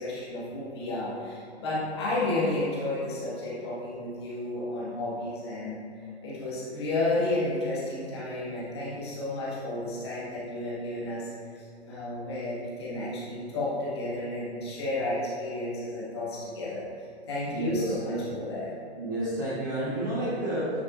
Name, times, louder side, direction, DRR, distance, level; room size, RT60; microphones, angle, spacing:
voice 1, 0.0-18.7, left 2 dB, 25° left, -8 dB, 1.7 m, -32 dB
voice 2, 17.5-18.2 18.9-20.8, right 1 dB, 20° right, -10 dB, 1.0 m, -30 dB
9.5 x 8.1 x 2.5 m, 2.5 s
hypercardioid pair, 180°, 34 cm